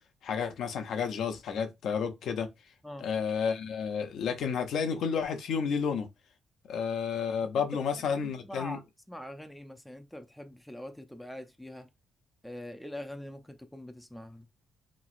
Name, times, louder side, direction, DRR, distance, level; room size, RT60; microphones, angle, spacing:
voice 1, 0.2-2.5 3.0-6.1 6.7-8.8, left 6 dB, 70° left, 0.6 m, -31 dB
voice 2, 8.4-8.8 9.1-11.9 12.4-14.4, left 1 dB, 5° left, 0.5 m, -43 dB
3.0 x 2.9 x 2.4 m
cardioid pair, 90°, 0 cm